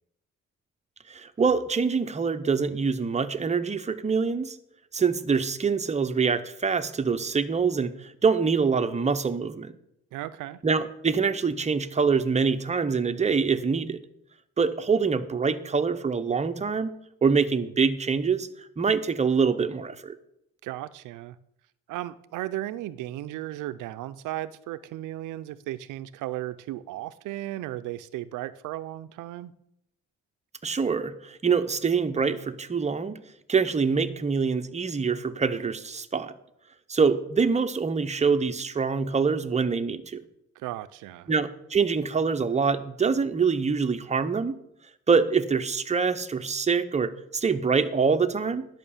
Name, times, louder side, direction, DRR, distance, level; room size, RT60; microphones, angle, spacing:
voice 1, 1.1-4.6 4.9-9.7 10.6-14.0 14.6-16.9 17.2-20.2 30.6-33.2 33.5-36.3 36.9-40.2 41.3-44.5 45.1-48.7, right 5 dB, 25° right, 9 dB, 0.8 m, -25 dB
voice 2, 10.1-10.6 20.6-21.4 21.9-29.5 40.6-41.3, right 14 dB, 85° right, 14 dB, 0.5 m, -35 dB
11.0 x 5.8 x 7.1 m, 0.76 s
cardioid pair, 90°, 30 cm